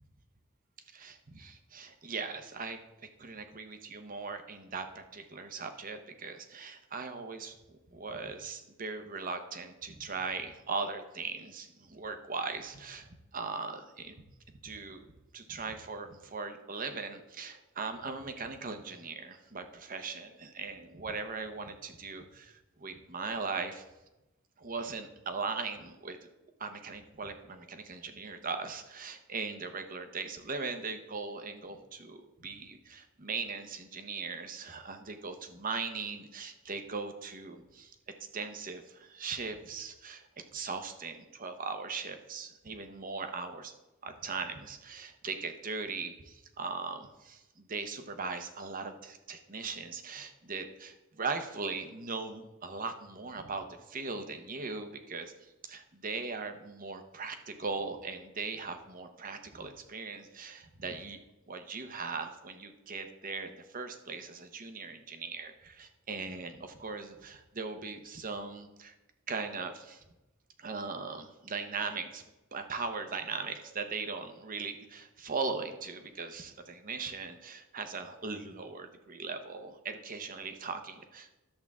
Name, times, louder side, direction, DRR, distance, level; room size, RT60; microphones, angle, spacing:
voice 1, 0.9-2.8 3.2-14.2 14.6-23.8 24.6-26.2 26.6-37.9 38.3-43.8 44.0-61.2 61.5-68.9 69.3-70.0 70.6-72.2 72.5-81.3, right 4 dB, 40° right, 7 dB, 0.9 m, -39 dB
11.5 x 7.4 x 3.6 m, 0.99 s
head